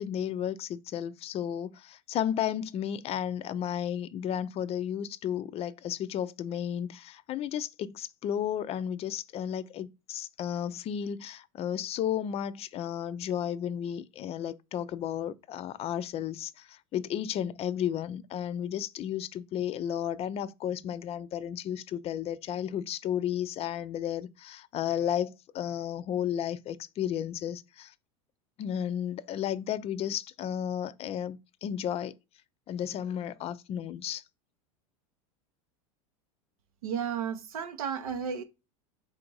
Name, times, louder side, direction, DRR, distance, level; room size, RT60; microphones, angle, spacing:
voice 1, 0.0-27.9 28.6-32.1 32.7-34.2, left 9 dB, 35° left, 0.4 m, -33 dB
voice 2, 36.8-38.4, right 7 dB, 90° right, 0.8 m, -33 dB
4.2 x 2.5 x 4.6 m
hypercardioid pair, 105°, 18 cm